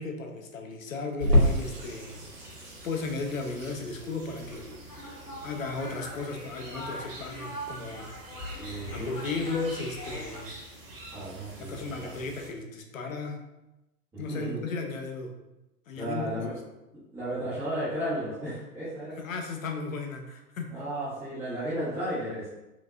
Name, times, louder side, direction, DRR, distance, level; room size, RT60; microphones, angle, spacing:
voice 1, 0.0-2.2 2.8-8.2 8.9-10.6 11.6-13.4 14.2-15.3 15.9-16.3 19.2-20.8, left 3 dB, 55° left, 4 dB, 0.7 m, -35 dB
Water tap faucet / Sink (filling or washing), 1.2-10.2, left 1 dB, 85° right, 1.3 m, -31 dB
sound 1, 1.3-12.5, right 2 dB, 35° right, 1.0 m, -47 dB
sound 2, 4.9-10.4, equal, 75° left, 1.1 m, -42 dB
voice 2, 8.6-9.2 11.1-12.2 14.1-14.6 16.0-16.6 17.1-19.2 20.7-22.5, right 1 dB, 5° right, -15 dB, 0.5 m, -34 dB
4.6 x 2.6 x 2.4 m, 0.98 s
figure-of-eight pair, 110°, 47 cm